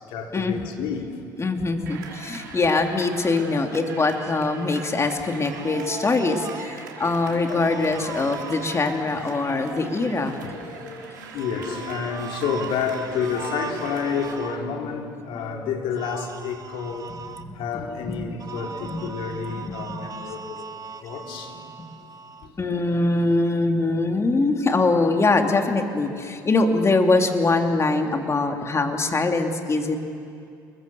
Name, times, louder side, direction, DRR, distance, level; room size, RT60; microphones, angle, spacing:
voice 1, 0.1-1.2 2.5-2.6 3.7-3.8 6.5-6.6 7.0-7.7 9.5-9.8 10.2-17.1 17.5-21.6 22.4-22.9 26.1-26.3, left 6 dB, 65° left, 2 dB, 3.3 m, -30 dB
voice 2, 1.4-10.4 17.4-17.5 18.1-18.2 18.9-19.0 19.3-19.4 22.6-30.0, left 3 dB, 30° left, 4 dB, 3.0 m, -23 dB
sound 1, 1.9-14.3, right 4 dB, 90° right, 3.5 m, -41 dB
sound 2, 5.5-6.7 7.4-9.0 11.3-14.6 16.0-17.4 18.4-22.5, right 6 dB, 40° right, 1.5 m, -39 dB
29.0 x 22.0 x 7.1 m, 2.5 s
hypercardioid pair, 60°, 10 cm